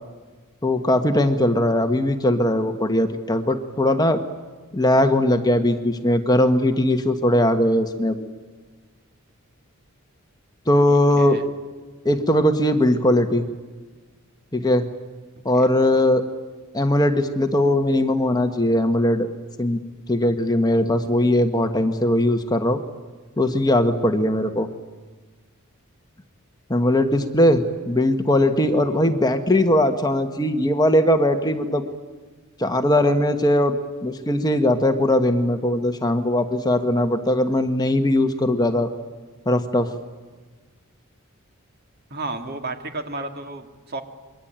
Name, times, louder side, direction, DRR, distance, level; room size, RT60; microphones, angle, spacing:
voice 1, 0.6-4.2 4.7-8.3 10.7-11.4 12.0-13.4 14.5-14.9 15.4-16.2 16.7-19.3 19.6-19.8 20.1-22.8 23.4-24.7 26.7-31.8 32.6-33.8 34.0-38.9 39.4-39.9, left 1 dB, 20° left, 6 dB, 1.4 m, -20 dB
voice 2, 10.9-11.5 15.5-15.7 42.1-44.0, right 2 dB, 45° right, 6 dB, 2.5 m, -33 dB
28.0 x 23.0 x 9.0 m, 1.4 s
head